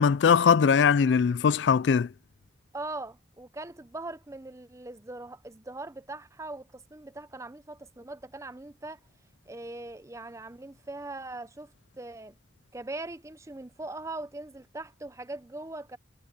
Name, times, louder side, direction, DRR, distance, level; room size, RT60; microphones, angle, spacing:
voice 1, 0.0-2.1, left 6 dB, 70° left, 0.4 m, -21 dB
voice 2, 2.7-9.0 9.5-11.7 12.0-12.4 12.7-16.0, right 2 dB, 15° right, 0.6 m, -40 dB
head